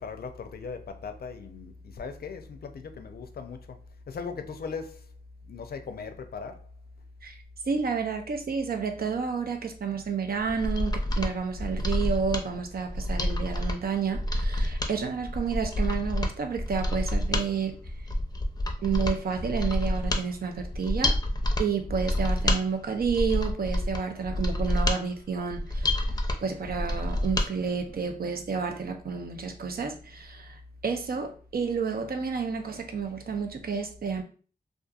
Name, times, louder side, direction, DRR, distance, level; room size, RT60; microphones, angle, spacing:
voice 1, 0.0-3.8 4.1-5.1 5.4-6.6, left 5 dB, 80° left, 0.4 m, -38 dB
voice 2, 7.7-17.7 18.8-21.2 21.6-26.1 26.4-34.2, right 6 dB, 75° right, 0.5 m, -30 dB
Mechanisms, 10.4-27.5 27.8-27.9, left 1 dB, 25° left, 0.5 m, -28 dB
2.7 x 2.4 x 2.3 m
cardioid pair, 45°, 16 cm